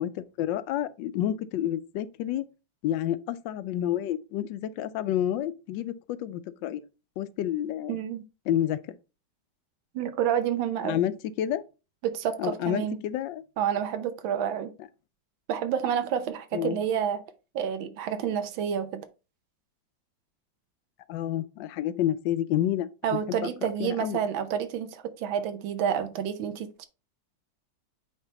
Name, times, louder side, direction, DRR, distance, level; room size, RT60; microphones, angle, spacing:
voice 1, 0.0-2.4 2.8-6.9 7.2-8.0 8.5-9.0 10.8-11.1 11.4-11.6 12.4-13.4 16.5-16.8 21.1-23.5 23.8-24.2, left 11 dB, 75° left, 1.2 m, -29 dB
voice 2, 7.9-8.2 9.9-11.0 12.0-13.0 13.6-14.7 15.5-17.2 17.5-19.1 23.0-26.9, right 8 dB, 85° right, 1.6 m, -29 dB
8.8 x 3.5 x 3.9 m
omnidirectional pair, 2.1 m